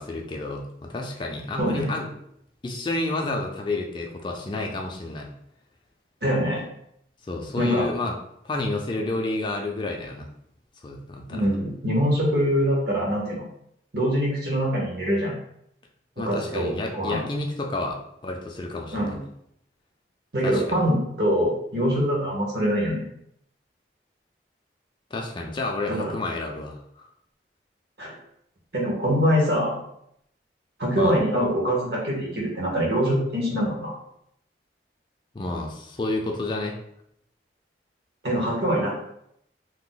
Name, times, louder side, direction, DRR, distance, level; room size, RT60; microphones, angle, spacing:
voice 1, 0.0-2.1 2.6-5.3 7.2-8.1 8.4-10.3 10.8-11.5 16.2-19.2 20.4-20.9 25.1-27.1 31.0-31.2 35.3-36.8, left 2 dB, 25° left, 1 dB, 0.3 m, -30 dB
voice 2, 1.6-1.9 6.2-6.6 7.6-7.9 11.3-13.4 13.9-15.3 16.3-17.2 18.9-19.2 20.3-23.1 25.9-26.1 28.0-28.1 28.7-29.8 30.8-33.9 38.2-38.9, equal, 65° right, -2 dB, 1.0 m, -24 dB
2.8 x 2.1 x 3.8 m, 0.74 s
head